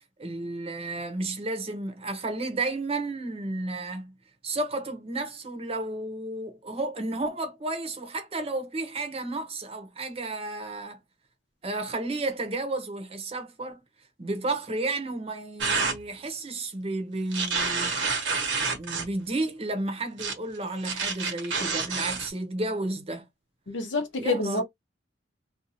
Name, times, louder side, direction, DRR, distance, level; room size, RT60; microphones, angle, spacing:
voice 1, 0.2-4.1 4.4-11.0 11.6-13.8 14.2-18.0 18.6-23.3 24.2-24.6, right 2 dB, 35° right, 0.7 m, -32 dB
sound 1, 15.6-16.0 17.3-19.1 20.2-20.3 20.8-22.3, right 4 dB, 85° right, 1.0 m, -28 dB
voice 2, 23.7-24.6, left 3 dB, 75° left, 0.8 m, -27 dB
2.6 x 2.3 x 2.7 m
head